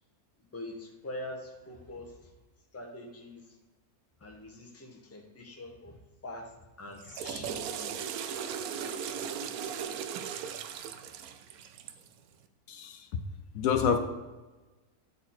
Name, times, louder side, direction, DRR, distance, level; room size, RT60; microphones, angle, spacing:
voice 1, 0.4-2.3 2.7-3.6 4.2-6.0 6.2-6.5 6.8-8.1 8.7-9.6, left 1 dB, 10° left, 1 dB, 0.8 m, -44 dB
Water / Toilet flush, 6.9-12.1, right 8 dB, 80° right, 1.0 m, -37 dB
voice 2, 12.7-13.2 13.5-14.0, left 7 dB, 70° left, 7 dB, 1.0 m, -28 dB
9.6 x 4.1 x 4.2 m, 1.2 s
omnidirectional pair, 1.6 m